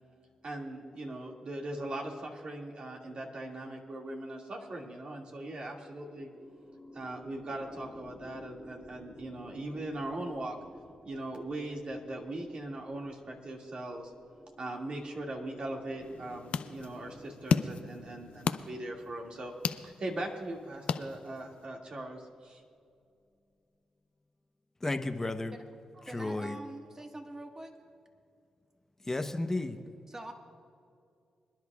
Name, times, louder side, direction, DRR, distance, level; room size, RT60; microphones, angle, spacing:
voice 1, 0.4-6.3 6.9-10.6 11.0-14.1 14.6-22.6, right 1 dB, 55° right, -1 dB, 2.2 m, -40 dB
sound 1, 5.5-22.6, left 1 dB, 5° right, 2.4 m, -55 dB
sound 2, 16.0-21.7, left 7 dB, 80° left, 0.4 m, -36 dB
voice 2, 24.8-25.6 26.0-26.6 29.0-29.8, left 2 dB, 20° left, 7 dB, 0.9 m, -33 dB
voice 3, 25.9-27.7 30.1-30.3, right 2 dB, 25° right, 3 dB, 1.6 m, -44 dB
26.0 x 10.5 x 2.4 m, 2.4 s
cardioid pair, 65°, 2 cm